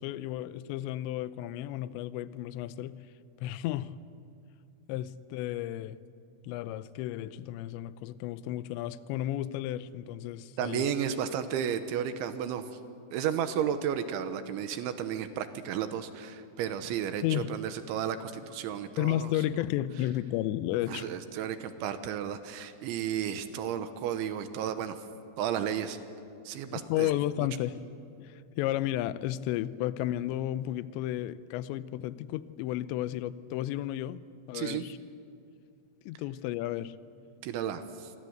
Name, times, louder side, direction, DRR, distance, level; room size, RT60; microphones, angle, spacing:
voice 1, 0.0-3.0 3.4-3.9 4.9-6.0 6.4-10.9 17.2-17.5 19.0-21.1 26.7-27.8 28.2-35.0 36.1-37.0, left 13 dB, 80° left, 15 dB, 2.7 m, -33 dB
voice 2, 10.6-12.6 13.1-19.3 20.9-25.0 25.4-26.0 26.5-27.1 34.5-34.9 37.4-38.1, right 9 dB, 80° right, 10 dB, 3.2 m, -33 dB
27.5 x 24.5 x 8.0 m, 2.5 s
omnidirectional pair, 5.7 m